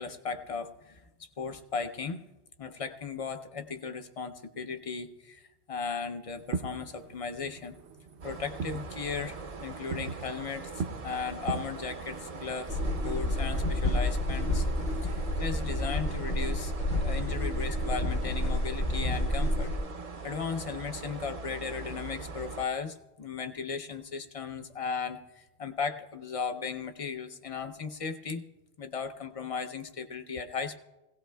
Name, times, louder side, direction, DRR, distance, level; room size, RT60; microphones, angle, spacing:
voice 1, 0.0-2.2 2.6-7.8 8.2-14.7 15.0-19.8 20.2-28.4 28.8-30.7, left 5 dB, 40° left, 8 dB, 0.6 m, -36 dB
Fireworks, 6.3-15.6, right 5 dB, 85° right, 1.0 m, -42 dB
sound 1, 8.2-22.7, right 4 dB, 45° right, 0.6 m, -42 dB
sound 2, 12.7-19.8, left 1 dB, 60° left, 3.0 m, -29 dB
21.0 x 17.0 x 2.2 m, 1.0 s
omnidirectional pair, 1.1 m